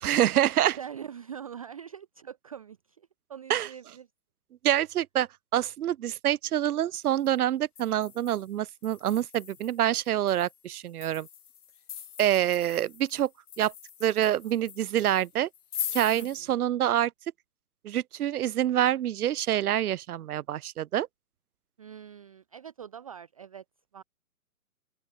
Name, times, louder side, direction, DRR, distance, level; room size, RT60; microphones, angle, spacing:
voice 1, 0.0-0.8 3.5-3.7 4.6-11.3 12.2-13.3 13.6-13.7 14.0-15.5 15.9-17.1 17.8-21.1, right 11 dB, 80° right, 0.6 m, -26 dB
voice 2, 0.8-4.1 16.1-16.6 21.8-23.6 23.9-24.0, right 8 dB, 25° right, 0.6 m, -43 dB
sound 1, 7.0-7.3 7.8-16.4, left 9 dB, 85° left, 1.0 m, -42 dB
open air
hypercardioid pair, 155°, 44 cm